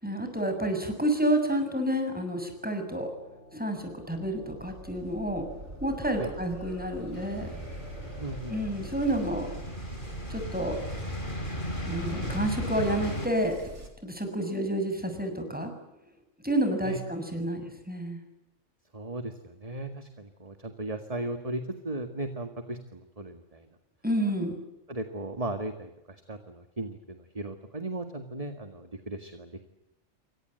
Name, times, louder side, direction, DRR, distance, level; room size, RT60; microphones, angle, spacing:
voice 1, 0.0-3.1 3.5-5.5 5.8-7.5 8.5-9.5 10.3-10.8 11.9-13.7 14.0-15.7 16.4-18.2 24.0-24.5, right 1 dB, 5° right, 6 dB, 7.1 m, -29 dB
sound 1, 1.5-13.9, right 2 dB, 65° right, 5.7 m, -45 dB
sound 2, 7.1-13.3, left 1 dB, 40° left, 4.7 m, -36 dB
voice 2, 8.2-8.6 16.8-17.0 18.9-23.7 24.9-29.7, right 2 dB, 30° right, 7 dB, 2.0 m, -37 dB
28.5 x 24.5 x 8.0 m, 0.93 s
omnidirectional pair, 1.3 m